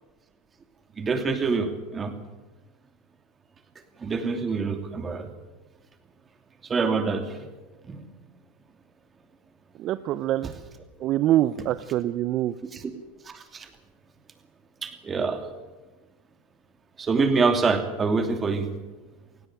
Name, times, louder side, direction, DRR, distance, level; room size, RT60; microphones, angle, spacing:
voice 1, 1.0-2.1 4.0-5.3 6.6-7.5 7.9-8.0 12.7-12.8 13.3-13.7 14.8-15.4 17.0-18.7, right 4 dB, 25° right, 7 dB, 2.8 m, -26 dB
voice 2, 9.8-10.5 11.0-12.5, right 13 dB, 50° right, 15 dB, 0.6 m, -24 dB
18.0 x 16.5 x 9.2 m, 1.2 s
supercardioid pair, 110°, 0 cm